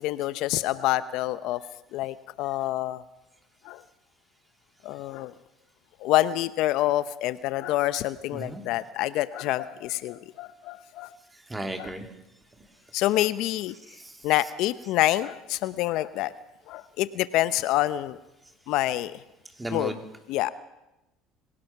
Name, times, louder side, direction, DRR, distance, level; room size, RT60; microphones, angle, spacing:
voice 1, 0.0-1.6 1.9-3.0 3.6-3.8 4.8-5.3 6.0-11.2 11.8-11.9 12.9-13.7 14.2-16.3 16.7-18.2 18.7-19.2 19.7-19.9 20.3-20.5, left 15 dB, 70° left, 15 dB, 0.7 m, -27 dB
voice 2, 8.3-8.6 11.5-12.1 13.9-14.5 19.6-20.0, right 1 dB, 15° right, 6 dB, 2.9 m, -35 dB
25.5 x 17.5 x 5.9 m, 0.93 s
supercardioid pair, 85°, 0 cm